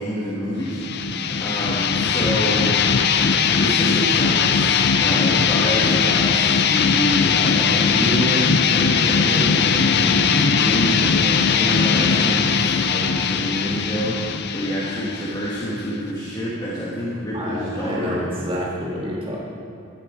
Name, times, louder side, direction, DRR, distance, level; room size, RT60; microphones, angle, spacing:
voice 1, 0.0-2.8 3.4-18.2, equal, 20° left, -7 dB, 1.4 m, -27 dB
sound 1, 0.7-16.1, left 6 dB, 50° left, 0.5 m, -19 dB
voice 2, 17.3-19.4, equal, 25° right, -4 dB, 1.5 m, -28 dB
13.0 x 10.0 x 4.8 m, 2.5 s
head